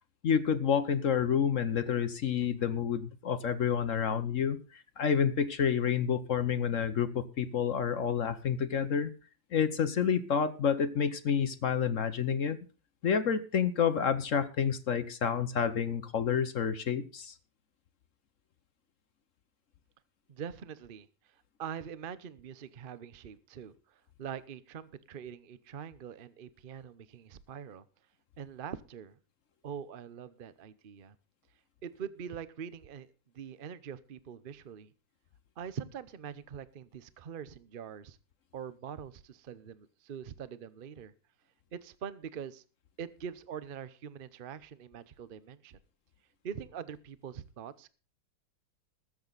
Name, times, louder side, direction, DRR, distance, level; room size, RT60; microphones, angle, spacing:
voice 1, 0.2-9.1 9.5-12.6 13.0-17.3, left 7 dB, 55° left, 11 dB, 1.0 m, -29 dB
voice 2, 20.3-27.9 28.4-29.2 29.6-31.1 31.8-34.9 35.6-38.2 38.5-41.1 41.7-42.6 43.0-45.8 46.4-47.9, right 8 dB, 55° right, 15 dB, 0.6 m, -43 dB
20.5 x 7.8 x 4.0 m, 0.35 s
omnidirectional pair, 2.1 m